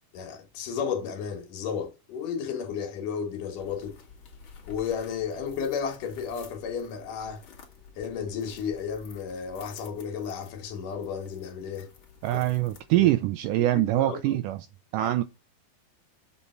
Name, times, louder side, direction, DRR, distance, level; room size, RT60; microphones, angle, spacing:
voice 1, 0.1-4.0 4.7-7.4 8.0-11.9 12.3-12.4 12.9-13.1 13.7-14.4 15.0-15.1, left 7 dB, 65° left, 2.8 m, -33 dB
sound 1, 3.4-13.3, left 6 dB, 45° left, 1.8 m, -51 dB
voice 2, 12.2-14.7 14.9-15.2, right 16 dB, 85° right, 1.9 m, -24 dB
7.1 x 5.6 x 4.4 m
omnidirectional pair, 4.2 m